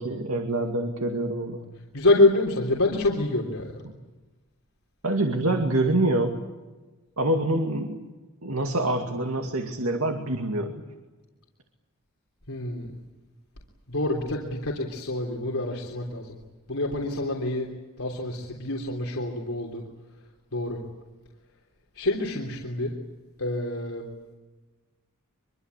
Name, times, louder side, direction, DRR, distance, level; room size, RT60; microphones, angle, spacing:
voice 1, 0.0-1.6 3.8-3.9 5.0-6.4 7.2-8.0 8.4-10.8, right 1 dB, 70° right, 4 dB, 2.4 m, -26 dB
voice 2, 1.9-3.7 12.5-12.9 13.9-16.4 16.7-17.7 18.0-19.8 20.5-20.8 22.0-22.9 23.4-24.0, left 2 dB, 75° left, -1 dB, 3.4 m, -26 dB
24.5 x 24.0 x 8.4 m, 1.2 s
head